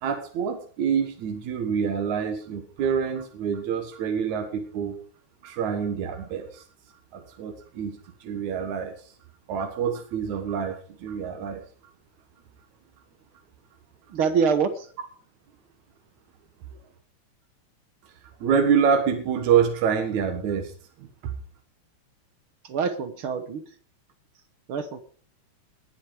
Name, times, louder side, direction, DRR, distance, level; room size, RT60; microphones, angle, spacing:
voice 1, 0.0-5.0 5.4-6.6 7.1-8.9 9.5-11.6 18.4-20.7 21.0-21.1, right 7 dB, 80° right, 5 dB, 2.8 m, -26 dB
voice 2, 14.1-14.9 22.6-23.8 24.7-25.0, right 6 dB, 60° right, 10 dB, 1.6 m, -25 dB
20.0 x 7.8 x 4.9 m, 0.42 s
omnidirectional pair, 3.3 m